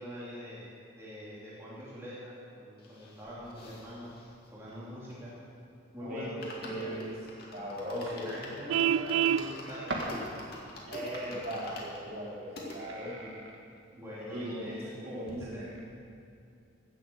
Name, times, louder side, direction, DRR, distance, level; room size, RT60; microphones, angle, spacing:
voice 1, 0.0-4.1 4.5-5.3 5.9-7.1 8.1-10.4 13.2-13.3 13.9-14.8 15.4-15.7, equal, 15° right, -9 dB, 3.0 m, -44 dB
sound 1, 2.8-5.6 5.9-6.0 6.2-12.8 13.4-13.5 13.6-13.7 14.0-15.0 15.3-15.4, left 2 dB, 50° left, 2.3 m, -47 dB
voice 2, 6.6-7.1 7.5-8.3 10.9-13.1 14.1-15.6, equal, 50° right, -6 dB, 3.7 m, -38 dB
sound 2, 7.7-7.8 8.1-8.3 9.4-10.3 10.6-13.8 14.7-14.8 15.2-15.3 15.5-15.8, right 2 dB, 65° right, 1.7 m, -42 dB
Vehicle horn car horn honking, 8.7-9.5, right 9 dB, 85° right, 0.3 m, -26 dB
16.5 x 7.6 x 7.0 m, 2.6 s
head